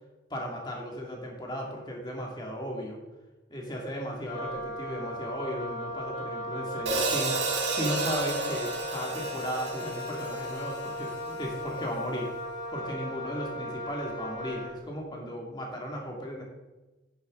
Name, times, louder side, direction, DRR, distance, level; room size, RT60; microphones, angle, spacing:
voice 1, 0.3-3.0 3.5-12.3 12.7-16.4, equal, 25° left, -1 dB, 2.3 m, -36 dB
Wind instrument woodwind instrument, 4.2-14.8, equal, 80° left, 2.8 m, -37 dB
Hi-hat, 6.9-11.1, right 3 dB, 70° right, 1.8 m, -32 dB
10.5 x 9.7 x 3.8 m, 1.1 s
head